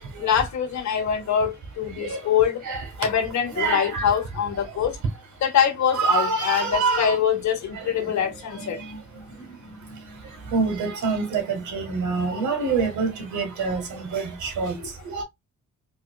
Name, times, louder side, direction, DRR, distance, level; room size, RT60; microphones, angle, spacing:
voice 1, 0.2-2.6 3.0-5.0 5.4-8.8, left 8 dB, 70° left, 1.4 m, -24 dB
voice 2, 1.9-2.3 2.6-3.1 3.6-4.2 4.6-4.8 5.9-7.2 7.7-15.2, right 4 dB, 75° right, 1.6 m, -27 dB
4.4 x 2.8 x 2.3 m
cardioid pair, 90°, 30 cm